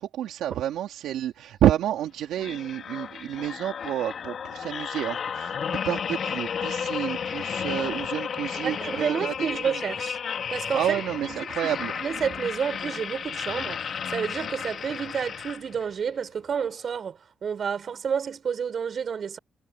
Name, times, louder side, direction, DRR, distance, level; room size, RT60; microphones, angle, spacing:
voice 1, 0.0-9.6 10.7-11.9, right 11 dB, 80° right, 2.7 m, -29 dB
sound 1, 2.4-15.9 16.5-16.7, left 7 dB, 55° left, 2.9 m, -33 dB
voice 2, 8.6-10.2 10.5-19.4, right 7 dB, 50° right, 7.2 m, -30 dB
cardioid pair, 90°, 0 cm